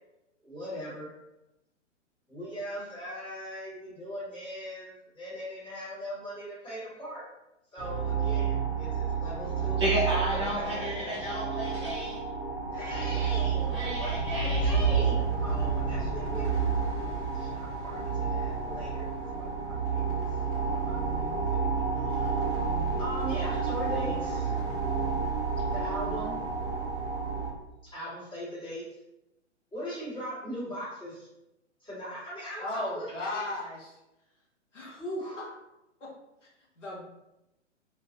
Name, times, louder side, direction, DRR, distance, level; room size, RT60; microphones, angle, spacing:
voice 1, 0.4-1.1 2.3-7.3 7.7-9.8 10.3-11.3 12.7-16.5 17.3-19.1 19.3-20.2 20.7-22.4 23.0-24.6 25.7-26.4 27.8-28.8 29.7-31.3 31.8-33.4 35.0-35.5, equal, 15° left, -10 dB, 1.4 m, -40 dB
sound 1, 7.8-27.5, right 5 dB, 10° right, 0.9 m, -30 dB
voice 2, 9.8-12.2 13.7-14.6, equal, 25° right, -7 dB, 0.4 m, -31 dB
voice 3, 32.6-34.0 34.7-35.5 36.0-36.1 36.4-36.5 36.8-37.1, left 2 dB, 75° left, -4 dB, 1.0 m, -37 dB
2.5 x 2.3 x 2.5 m, 0.91 s
figure-of-eight pair, 115°, 37 cm